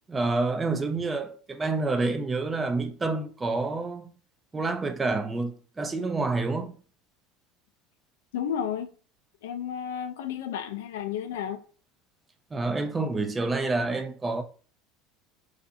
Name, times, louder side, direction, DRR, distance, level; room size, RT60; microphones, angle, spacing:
voice 1, 0.1-4.1 4.5-6.7 12.5-14.4, right 3 dB, 20° right, 0.3 m, -28 dB
voice 2, 8.3-8.9 9.4-11.6, left 8 dB, 90° left, 0.3 m, -32 dB
2.5 x 2.4 x 2.4 m
supercardioid pair, 115°, 0 cm